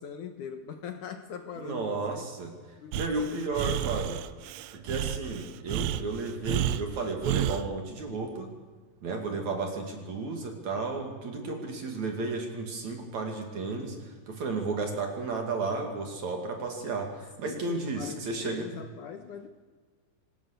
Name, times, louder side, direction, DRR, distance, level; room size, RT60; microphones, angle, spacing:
voice 1, 0.0-2.2 2.8-4.1 17.4-19.5, left 7 dB, 75° left, 7 dB, 1.9 m, -41 dB
voice 2, 1.6-2.5 3.0-4.2 4.7-8.5 9.0-18.7, right 3 dB, 45° right, 3 dB, 3.3 m, -33 dB
Breathing, 2.9-7.7, right 12 dB, 90° right, 3.2 m, -31 dB
25.0 x 18.5 x 6.7 m, 1.5 s
omnidirectional pair, 5.2 m